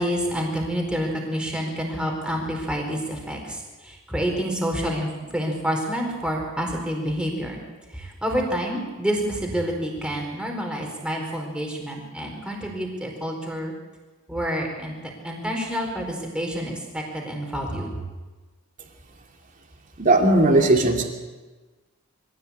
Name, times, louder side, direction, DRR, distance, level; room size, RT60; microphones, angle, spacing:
voice 1, 0.0-7.6 7.9-13.7 14.3-14.9 15.2-18.0, equal, 5° right, 0 dB, 4.5 m, -28 dB
voice 2, 20.0-21.0, right 2 dB, 35° right, 2 dB, 2.8 m, -17 dB
24.0 x 16.0 x 8.7 m, 1.3 s
head